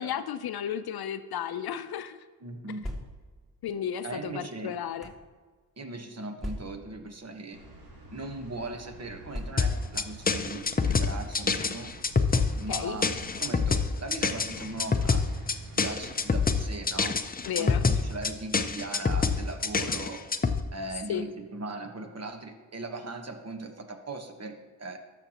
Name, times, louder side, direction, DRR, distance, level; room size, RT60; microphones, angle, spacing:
voice 1, 0.0-2.2 3.6-5.1 12.7-13.0 17.4-17.8 21.1-21.2, left 9 dB, 65° left, 12 dB, 0.6 m, -33 dB
voice 2, 2.4-2.9 4.0-4.7 5.8-7.6 8.1-11.9 12.6-13.1 13.4-15.3 15.7-17.2 17.6-20.2 20.7-25.0, right 2 dB, 40° right, 5 dB, 1.2 m, -39 dB
sound 1, 2.6-3.5 4.3-5.3 6.4-7.0 7.9-8.0 8.3-8.4 9.3-10.0 10.9-11.1 12.3-13.0, left 1 dB, ahead, 2.1 m, -40 dB
sound 2, 7.5-16.5, right 2 dB, 90° right, 1.9 m, -48 dB
sound 3, 9.6-20.6, left 4 dB, 20° left, 0.6 m, -26 dB
13.0 x 6.0 x 2.9 m, 1.4 s
cardioid pair, 55°, 40 cm